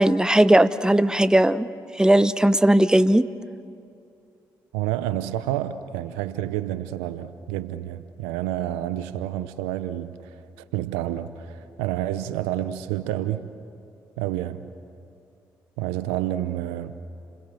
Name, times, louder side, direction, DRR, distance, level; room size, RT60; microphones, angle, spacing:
voice 1, 0.0-1.7 2.0-3.3, right 1 dB, 5° right, 14 dB, 0.9 m, -18 dB
voice 2, 4.7-13.5 14.2-14.6 15.8-17.0, right 13 dB, 85° right, 13 dB, 0.8 m, -29 dB
29.5 x 21.5 x 7.6 m, 2.5 s
hypercardioid pair, 45°, 10 cm